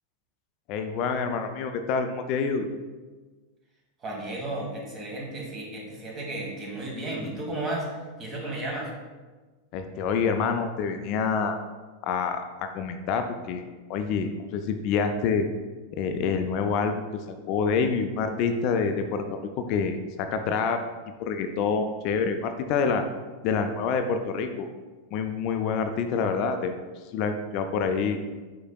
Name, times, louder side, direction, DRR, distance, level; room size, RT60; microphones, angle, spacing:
voice 1, 0.7-2.7 9.7-11.6 12.0-13.6 13.9-15.5 15.9-19.4 19.7-20.8 21.2-23.0 23.4-24.7 25.1-26.8 27.1-28.2, left 5 dB, 50° left, 7 dB, 0.3 m, -27 dB
voice 2, 4.0-8.9, right 1 dB, 30° right, -2 dB, 1.3 m, -33 dB
4.8 x 4.4 x 2.3 m, 1.3 s
figure-of-eight pair, 90°, 0 cm